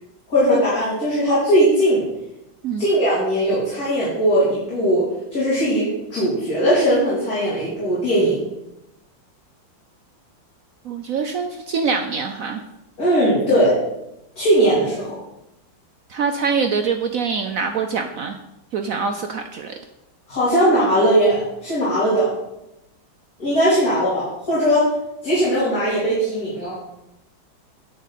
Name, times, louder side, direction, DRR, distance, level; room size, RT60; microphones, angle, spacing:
voice 1, 0.3-2.0 2.8-5.1 5.3-8.4 13.0-13.8 14.4-15.1 20.3-22.3 23.4-24.9 25.2-26.7, equal, 50° left, -9 dB, 4.1 m, -19 dB
voice 2, 10.8-12.6 16.1-18.4 18.7-19.7, right 5 dB, 65° right, 6 dB, 0.9 m, -24 dB
10.5 x 8.3 x 4.1 m, 0.87 s
omnidirectional pair, 2.0 m